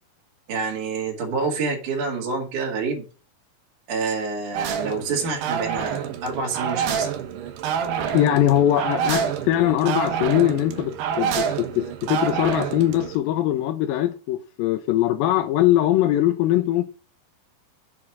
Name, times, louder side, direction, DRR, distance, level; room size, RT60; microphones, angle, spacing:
voice 1, 0.5-3.0 3.9-7.1, right 4 dB, 55° right, 3.3 m, -27 dB
sound 1, 4.5-13.2, right 8 dB, 85° right, 3.2 m, -27 dB
voice 2, 8.1-16.8, left 13 dB, 80° left, 2.2 m, -21 dB
7.4 x 4.8 x 6.1 m
omnidirectional pair, 4.6 m